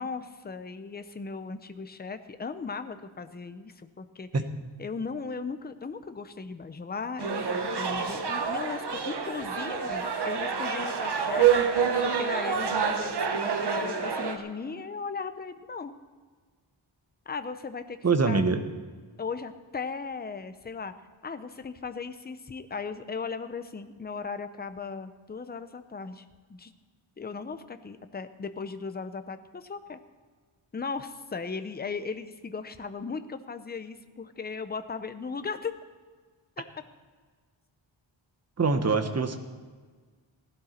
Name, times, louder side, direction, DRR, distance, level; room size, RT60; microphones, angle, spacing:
voice 1, 0.0-4.3 4.8-11.5 12.0-15.9 17.3-18.5 19.2-20.9 21.2-26.7 27.2-30.0 30.7-35.8 36.6-36.7, left 4 dB, 20° left, 10 dB, 0.6 m, -37 dB
sound 1, 7.2-14.4, right 7 dB, 55° right, 1.2 m, -27 dB
voice 2, 18.0-18.6 38.6-39.4, right 4 dB, 30° right, 8 dB, 1.0 m, -24 dB
16.5 x 11.5 x 4.3 m, 1.5 s
wide cardioid pair, 165°, 48 cm